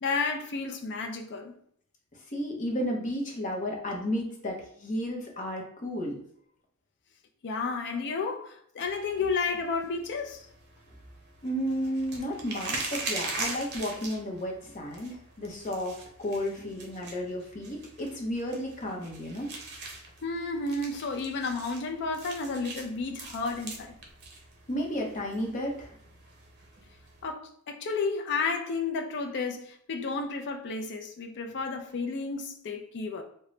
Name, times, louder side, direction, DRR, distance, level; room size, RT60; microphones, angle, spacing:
voice 1, 0.0-1.6 7.4-10.4 20.2-23.9 27.2-33.2, left 4 dB, 50° left, 0.4 m, -32 dB
voice 2, 2.3-6.2 11.4-19.5 24.7-25.9, equal, 35° left, 0.8 m, -33 dB
sound 1, 8.8-27.3, right 3 dB, 50° right, 0.8 m, -42 dB
3.8 x 2.2 x 3.1 m
head